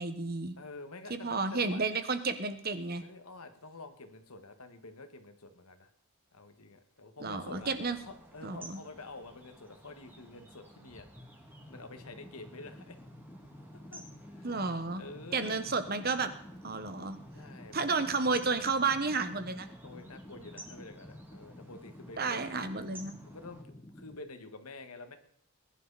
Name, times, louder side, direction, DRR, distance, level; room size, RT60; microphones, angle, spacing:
voice 1, 0.0-0.5 1.1-3.0 7.2-8.0 8.4-8.8 14.4-15.0 15.3-16.3 16.6-17.2 17.7-19.7 22.2-23.1, right 4 dB, 45° right, 10 dB, 1.3 m, -31 dB
voice 2, 0.6-1.9 3.0-5.9 6.3-7.7 8.0-11.1 11.7-13.0 13.9-14.6 15.0-15.6 17.3-18.1 19.8-22.5 23.3-25.2, left 3 dB, 85° left, 8 dB, 1.8 m, -48 dB
sound 1, 7.5-23.6, right 1 dB, 10° right, 1.9 m, -55 dB
sound 2, 11.2-24.2, left 1 dB, 20° left, 1.3 m, -51 dB
21.0 x 11.0 x 4.2 m, 0.67 s
head